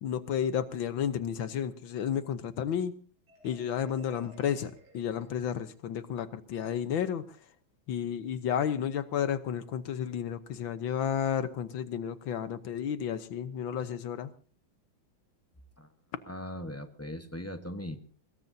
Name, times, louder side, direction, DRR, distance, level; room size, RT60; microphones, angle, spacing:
voice 1, 0.0-2.9 3.4-7.4 7.9-14.3, left 8 dB, 75° left, 12 dB, 1.7 m, -32 dB
Marimba xylophone, 3.3-6.0, left 1 dB, 50° right, 5.1 m, -57 dB
voice 2, 16.2-18.0, left 1 dB, 10° left, 7 dB, 0.7 m, -39 dB
23.5 x 21.0 x 2.7 m, 0.39 s
omnidirectional pair, 2.2 m